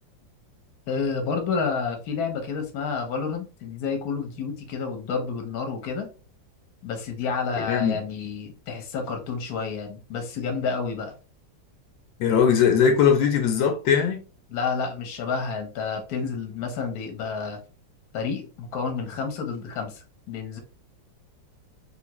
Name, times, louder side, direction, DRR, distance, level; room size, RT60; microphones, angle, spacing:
voice 1, 0.9-6.1 6.8-11.1 14.5-17.6 18.1-20.6, left 5 dB, 60° left, 1.2 m, -30 dB
voice 2, 7.6-8.0 12.2-14.2, left 7 dB, 80° left, 1.3 m, -20 dB
3.4 x 2.5 x 2.9 m
omnidirectional pair, 2.0 m